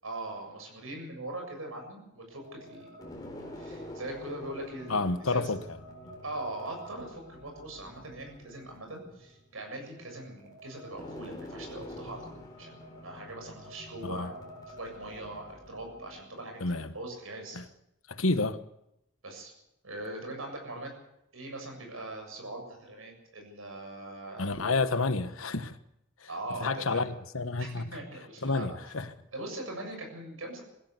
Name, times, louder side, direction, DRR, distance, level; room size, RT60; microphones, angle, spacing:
voice 1, 0.0-2.9 3.4-5.5 6.2-14.3 14.7-16.6 16.9-17.6 19.2-19.5 19.8-20.9 21.3-24.8 26.3-27.1 27.6-28.7 29.3-30.6, right 1 dB, 85° right, 7.4 m, -41 dB
sound 1, 2.3-17.0, left 1 dB, 20° left, 3.9 m, -47 dB
voice 2, 4.9-5.6 6.0-6.1 14.0-14.3 16.6-16.9 17.5-17.6 18.1-18.6 24.4-25.8 26.6-27.9 28.4-29.1, left 3 dB, 85° left, 1.3 m, -29 dB
21.5 x 15.5 x 8.3 m
head